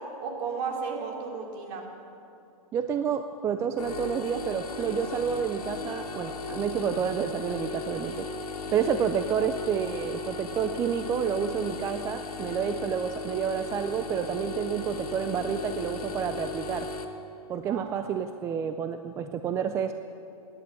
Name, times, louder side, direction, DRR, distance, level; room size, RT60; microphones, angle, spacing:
voice 1, 0.2-1.8 17.7-18.2, right 5 dB, 40° right, 1 dB, 2.8 m, -34 dB
voice 2, 2.7-8.3 8.7-16.9 17.5-19.9, right 7 dB, 15° right, 8 dB, 0.4 m, -29 dB
sound 1, 3.8-17.0, left 3 dB, 85° left, 1.7 m, -36 dB
17.0 x 10.5 x 7.1 m, 2.7 s
hypercardioid pair, 135°, 19 cm